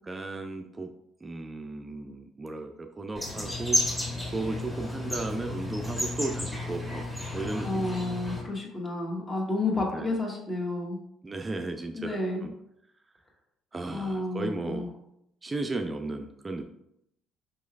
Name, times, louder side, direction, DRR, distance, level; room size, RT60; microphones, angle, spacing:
voice 1, 0.0-0.9 1.2-4.0 4.3-7.0 7.3-8.0 9.9-10.2 11.2-12.5 13.7-14.9 15.4-16.7, right 2 dB, 25° right, 5 dB, 0.3 m, -35 dB
sound 1, 3.2-8.4, left 1 dB, 10° left, 1.3 m, -32 dB
voice 2, 7.6-11.0 11.9-12.4 13.9-14.9, left 2 dB, 30° left, -1 dB, 1.1 m, -31 dB
4.6 x 3.0 x 2.3 m, 0.79 s
hypercardioid pair, 55°, 0 cm